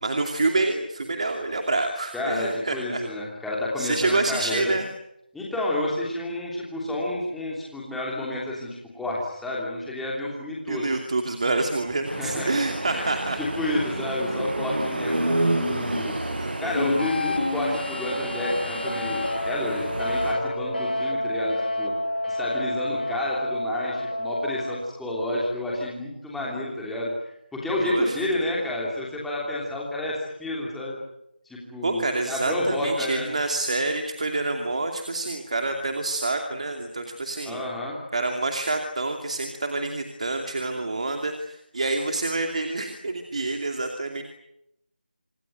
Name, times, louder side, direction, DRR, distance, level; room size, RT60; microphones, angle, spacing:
voice 1, 0.0-3.0 3.8-4.8 10.7-13.4 16.4-16.8 27.8-28.2 31.8-37.6 38.1-44.2, right 2 dB, 45° right, 5 dB, 2.6 m, -27 dB
voice 2, 2.1-4.8 5.3-10.9 12.2-12.5 12.9-13.1 13.4-16.1 16.6-21.9 22.3-31.0 31.4-33.3 37.4-38.0, left 1 dB, ahead, -5 dB, 3.2 m, -30 dB
sound 1, 12.0-20.3, right 1 dB, 80° right, 6.7 m, -30 dB
sound 2, 16.7-24.7, left 1 dB, 80° left, 6.2 m, -28 dB
27.0 x 21.0 x 9.3 m, 0.82 s
figure-of-eight pair, 175°, 5 cm